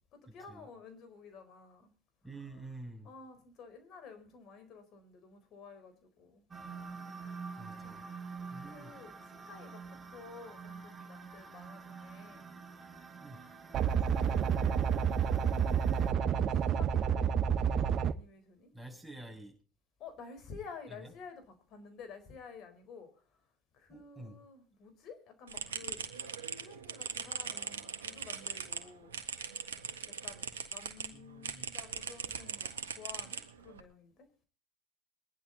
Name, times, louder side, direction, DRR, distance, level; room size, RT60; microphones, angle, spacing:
voice 1, 0.1-1.9 2.3-2.7 3.0-6.4 7.8-7.9 8.6-12.5 13.9-14.2 15.5-18.7 20.0-23.1 23.7-26.0 26.6-29.2 30.0-32.7 33.0-34.3, left 5 dB, 55° left, 4.2 m, -52 dB
voice 2, 2.2-3.1 7.6-8.0 8.5-8.9 13.2-13.4 18.7-19.5 20.9-21.1 23.9-24.4 31.1-31.7, right 2 dB, ahead, 6.3 m, -48 dB
sound 1, 6.5-16.1, right 5 dB, 25° right, 4.1 m, -47 dB
sound 2, 13.7-18.1, right 7 dB, 50° right, 1.0 m, -29 dB
sound 3, 25.5-31.1 31.4-33.8, right 6 dB, 85° right, 1.5 m, -40 dB
22.0 x 10.5 x 3.9 m
hypercardioid pair, 70°, 0 cm